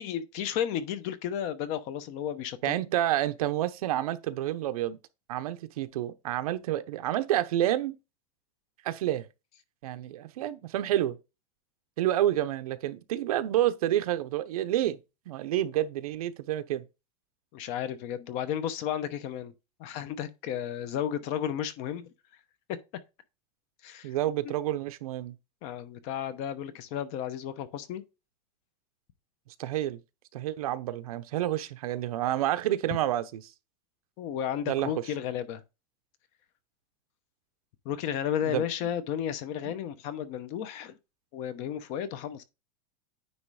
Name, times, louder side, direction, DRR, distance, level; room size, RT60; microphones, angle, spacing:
voice 1, 0.0-2.8 17.5-19.5 19.8-22.1 23.8-24.1 24.4-24.5 25.6-28.0 34.2-35.6 37.8-41.0 41.3-42.4, left 9 dB, 40° left, 0.8 m, -33 dB
voice 2, 2.6-5.0 5.3-7.9 8.8-9.2 9.8-11.2 12.0-15.0 15.3-16.8 24.0-25.4 29.6-30.0 30.3-33.4 34.7-34.9 38.4-38.9 39.6-39.7, right 13 dB, 80° right, 0.9 m, -29 dB
9.6 x 3.2 x 4.8 m
supercardioid pair, 170°, 18 cm